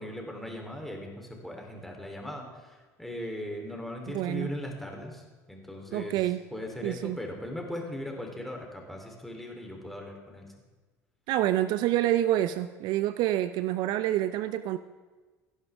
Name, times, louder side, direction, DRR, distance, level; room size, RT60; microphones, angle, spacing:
voice 1, 0.0-5.2 5.5-6.2 6.5-10.5, left 1 dB, ahead, 1 dB, 3.3 m, -39 dB
voice 2, 4.1-4.5 5.9-6.4 6.8-7.2 11.3-14.8, right 13 dB, 65° right, 13 dB, 0.5 m, -27 dB
16.5 x 11.0 x 3.5 m, 1.3 s
hypercardioid pair, 70°, 8 cm